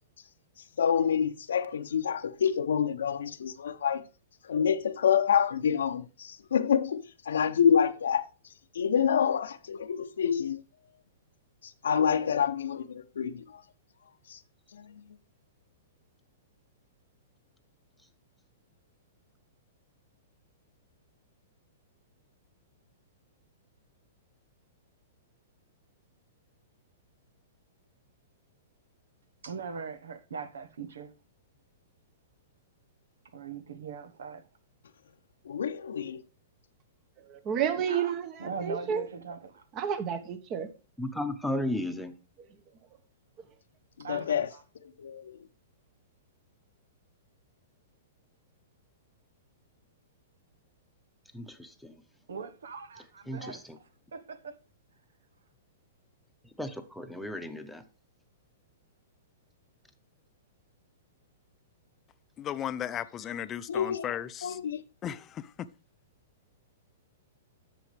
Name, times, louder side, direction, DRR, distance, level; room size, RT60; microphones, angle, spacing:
voice 1, 0.8-4.1 4.4-10.6 11.6-13.6 14.3-14.4 14.7-15.0 35.4-36.2 44.0-45.4 63.7-64.1 64.4-64.8, left 7 dB, 85° left, 0.8 m, -28 dB
voice 2, 29.4-31.1 33.3-34.4 37.9-39.6 44.0-44.4 52.3-53.6 54.1-54.5, right 5 dB, 85° right, 1.2 m, -40 dB
voice 3, 37.3-39.1 39.7-40.7, right 8 dB, 35° right, 1.4 m, -31 dB
voice 4, 41.0-42.1 51.3-52.0 53.3-53.8 56.6-57.8, left 1 dB, ahead, 1.1 m, -34 dB
voice 5, 62.4-64.5 65.0-65.2, left 10 dB, 25° left, 0.6 m, -35 dB
10.5 x 6.9 x 3.4 m
hypercardioid pair, 130°, 0 cm